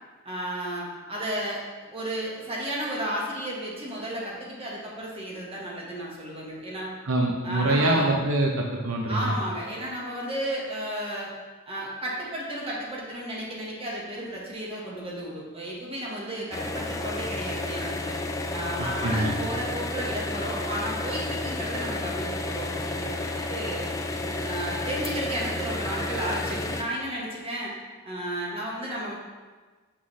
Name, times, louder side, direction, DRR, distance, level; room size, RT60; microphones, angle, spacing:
voice 1, 0.2-6.9 7.4-8.1 9.1-11.3 11.7-18.2 18.5-23.9 24.4-27.7 28.0-29.1, right 1 dB, 30° right, -4 dB, 1.4 m, -33 dB
voice 2, 7.1-9.3 19.0-19.3, right 2 dB, 75° right, 0 dB, 0.7 m, -24 dB
sound 1, 16.5-26.8, left 2 dB, 15° left, 0.3 m, -31 dB
6.1 x 5.8 x 3.2 m, 1.4 s
head